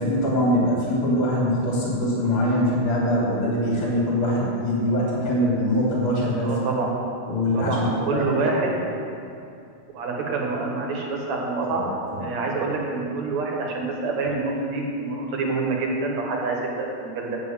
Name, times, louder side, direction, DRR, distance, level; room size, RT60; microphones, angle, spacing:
voice 1, 0.0-6.6 7.3-8.3 11.6-12.3, left 1 dB, 40° left, -6 dB, 3.7 m, -23 dB
voice 2, 6.4-7.0 7.5-8.8 9.9-11.8 12.2-17.4, right 3 dB, 70° right, 0 dB, 2.7 m, -27 dB
7.9 x 7.5 x 8.7 m, 2.6 s
omnidirectional pair, 3.4 m